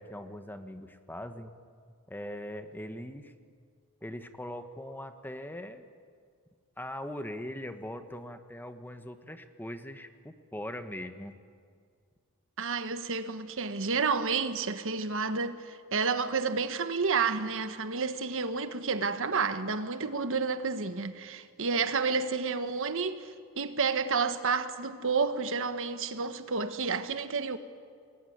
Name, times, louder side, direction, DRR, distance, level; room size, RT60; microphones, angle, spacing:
voice 1, 0.0-1.5 2.1-3.3 4.0-5.8 6.8-11.3, left 1 dB, 10° left, 1.3 m, -41 dB
voice 2, 12.6-27.6, right 5 dB, 60° right, 1.3 m, -30 dB
27.0 x 21.5 x 9.4 m
head